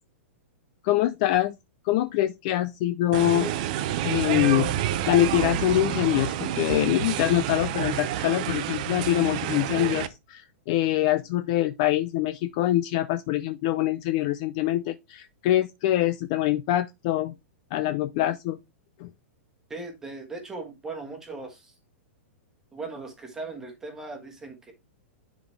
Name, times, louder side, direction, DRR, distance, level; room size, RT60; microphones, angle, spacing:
voice 1, 0.8-1.5 1.8-3.5 4.0-17.3 17.7-18.6 19.0-19.1, left 14 dB, 30° left, 0.4 m, -24 dB
sound 1, 3.1-10.1, right 11 dB, 35° right, 0.6 m, -29 dB
voice 2, 19.7-21.7 22.7-24.7, right 3 dB, 5° right, 1.4 m, -38 dB
10.5 x 4.0 x 3.3 m
supercardioid pair, 175°, 7 cm